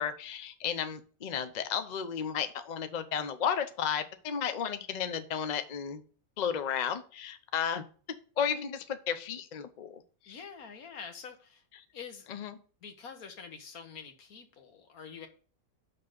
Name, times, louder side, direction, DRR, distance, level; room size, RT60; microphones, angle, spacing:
voice 1, 0.0-6.0 6.4-7.8 8.4-10.4 12.3-12.5, left 8 dB, 40° left, 10 dB, 0.7 m, -33 dB
voice 2, 10.3-11.6 11.9-12.3 12.8-15.3, left 6 dB, 85° left, 6 dB, 1.7 m, -46 dB
5.9 x 5.8 x 6.4 m, 0.40 s
omnidirectional pair, 1.5 m